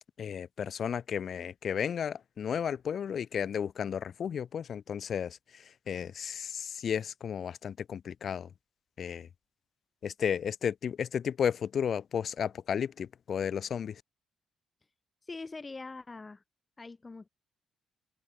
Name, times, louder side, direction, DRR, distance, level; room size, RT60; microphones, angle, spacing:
voice 1, 0.2-8.5 9.0-9.3 10.0-14.0, left 8 dB, 55° left, 1.8 m, -33 dB
voice 2, 15.3-16.4 16.8-17.3, left 3 dB, 25° left, 7.2 m, -43 dB
cardioid pair, 90°, 0 cm